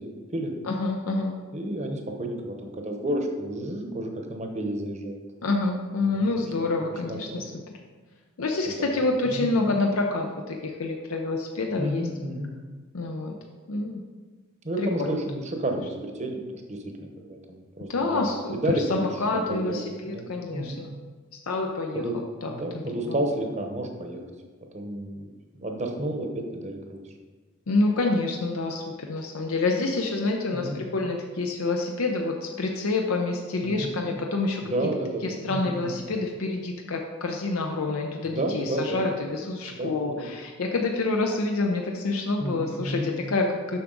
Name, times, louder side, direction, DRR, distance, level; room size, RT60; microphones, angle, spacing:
voice 1, 0.0-0.5 1.5-5.2 6.0-6.3 6.6-7.4 8.7-8.8 9.3-9.5 11.8-12.5 14.6-18.3 18.5-19.1 19.3-20.3 20.5-20.8 21.9-22.1 22.5-24.2 24.7-27.0 30.5-30.8 33.6-33.9 34.6-36.0 38.2-39.0 39.7-40.3 42.4-43.1, right 1 dB, 30° right, 3 dB, 0.9 m, -31 dB
voice 2, 0.6-1.3 5.4-7.5 8.4-12.1 12.9-13.4 13.7-14.0 14.8-15.1 17.9-20.9 21.3-22.0 22.4-23.2 27.7-34.6 35.2-43.8, left 3 dB, 75° left, 2 dB, 0.6 m, -27 dB
7.2 x 5.9 x 3.8 m, 1.4 s
head